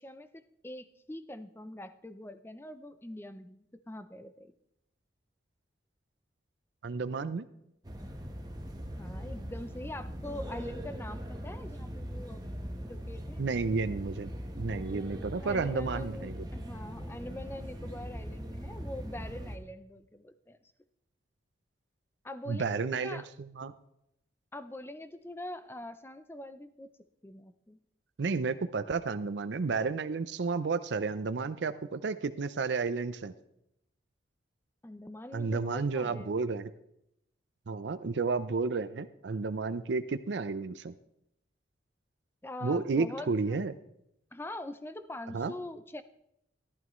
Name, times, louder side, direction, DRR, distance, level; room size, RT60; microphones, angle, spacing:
voice 1, 0.0-4.5 9.0-12.4 12.8-13.4 15.4-20.6 22.2-23.3 24.5-26.9 27.2-27.8 34.8-36.3 42.4-43.7 44.3-46.0, left 1 dB, 10° left, 12 dB, 0.5 m, -44 dB
voice 2, 6.8-7.5 13.4-14.3 14.6-16.5 22.5-23.7 28.2-33.3 35.3-36.7 37.7-40.9 42.6-43.7 45.3-45.5, right 4 dB, 70° right, 12 dB, 0.5 m, -32 dB
sound 1, 7.8-19.6, equal, 20° right, 1.0 m, -40 dB
14.0 x 11.5 x 3.1 m, 0.79 s
head